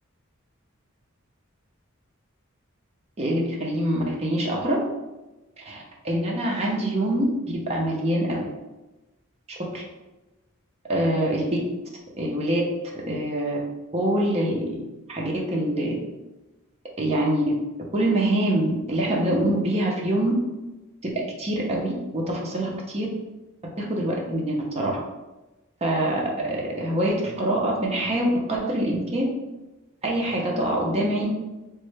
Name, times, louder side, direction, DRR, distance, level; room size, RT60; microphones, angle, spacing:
voice 1, 3.2-4.8 5.7-7.2 7.7-8.5 9.5-9.8 10.9-11.6 12.2-12.6 13.1-13.6 13.9-14.8 15.1-15.9 17.0-17.4 17.9-20.3 21.0-23.1 23.8-24.9 25.8-29.2 30.0-31.3, right 1 dB, 30° right, -2 dB, 0.5 m, -25 dB
3.2 x 2.1 x 3.2 m, 1.1 s
head